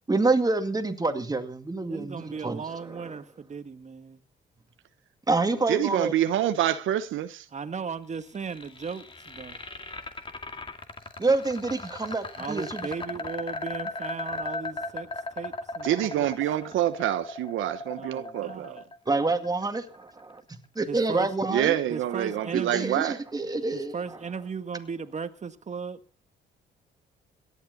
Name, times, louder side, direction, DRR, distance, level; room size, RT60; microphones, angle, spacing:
voice 1, 0.1-3.1 5.3-6.1 11.2-12.9 19.1-20.4 20.8-21.7 22.7-23.9, right 3 dB, 20° right, 2.1 m, -27 dB
voice 2, 1.9-4.2 7.5-9.0 9.4-9.5 12.4-15.1 15.4-16.3 16.6-16.8 17.9-18.8 20.9-21.3 21.9-23.0 23.7-26.0, right 5 dB, 35° right, 1.5 m, -36 dB
voice 3, 5.7-7.5 15.8-18.8 21.5-23.2, right 12 dB, 80° right, 1.1 m, -26 dB
sound 1, 8.1-20.2, left 2 dB, 25° left, 2.3 m, -37 dB
17.5 x 12.0 x 4.1 m
cardioid pair, 90°, 20 cm